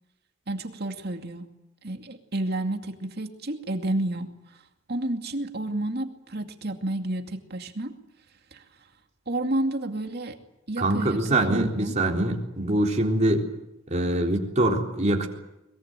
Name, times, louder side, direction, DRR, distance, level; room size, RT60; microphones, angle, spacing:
voice 1, 0.5-1.5 1.8-4.6 4.9-8.0 8.5-8.6 9.3-10.4 10.7-12.0, right 1 dB, 50° right, 5 dB, 2.4 m, -30 dB
voice 2, 10.8-13.4 13.9-15.3, right 1 dB, 35° right, 1 dB, 3.8 m, -24 dB
23.0 x 22.0 x 9.0 m, 0.92 s
head